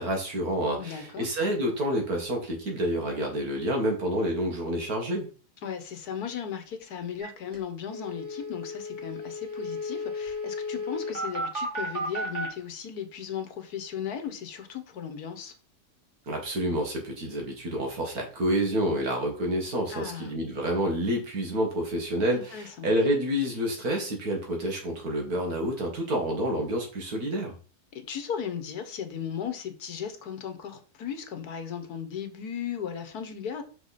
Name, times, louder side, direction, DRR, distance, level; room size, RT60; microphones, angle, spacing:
voice 1, 0.0-5.3 16.3-27.5, equal, 65° right, 2.3 m, -28 dB
voice 2, 0.8-1.3 5.6-15.5 19.9-20.3 22.5-22.9 27.9-33.6, left 8 dB, 75° left, 1.5 m, -36 dB
sound 1, 7.2-7.3 7.5-7.6 7.9-12.5, left 1 dB, 50° right, 2.3 m, -33 dB
6.1 x 5.1 x 4.1 m
omnidirectional pair, 1.7 m